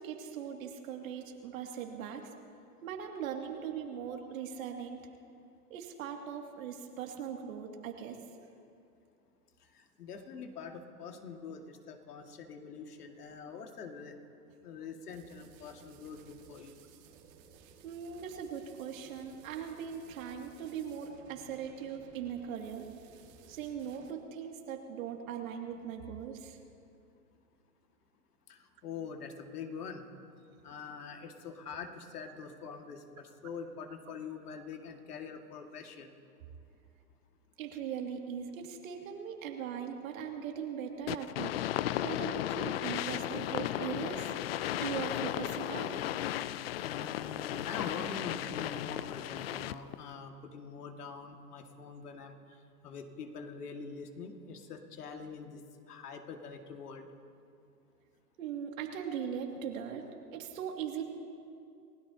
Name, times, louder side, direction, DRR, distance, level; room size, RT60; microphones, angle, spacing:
voice 1, 0.0-2.3 2.8-5.1 5.7-8.2 17.8-22.9 23.5-26.6 37.6-41.6 42.0-44.3 44.8-46.0 58.4-61.0, right 8 dB, 55° right, 2 dB, 2.5 m, -40 dB
voice 2, 9.6-14.2 14.6-16.7 28.5-30.0 30.6-36.1 46.8-55.6 55.9-57.1, left 5 dB, 70° left, 4 dB, 2.1 m, -44 dB
sound 1, 15.1-24.1, right 7 dB, 35° right, 2.0 m, -58 dB
sound 2, 41.1-50.0, left 13 dB, 40° left, 0.4 m, -35 dB
29.5 x 16.5 x 2.9 m, 2.5 s
hypercardioid pair, 120°, 48 cm